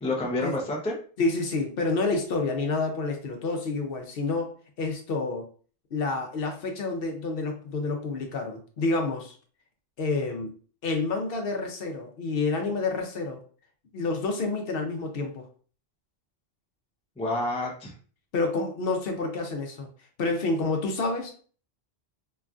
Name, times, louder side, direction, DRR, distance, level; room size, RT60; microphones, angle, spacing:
voice 1, 0.0-1.0 17.2-17.9, left 2 dB, 10° left, -1 dB, 0.3 m, -28 dB
voice 2, 1.2-4.5 4.8-5.4 5.9-9.4 10.0-10.5 10.8-13.4 13.9-15.4 18.3-19.9 20.2-21.3, left 3 dB, 65° left, 3 dB, 0.8 m, -28 dB
3.0 x 2.4 x 2.3 m, 0.42 s
omnidirectional pair, 1.1 m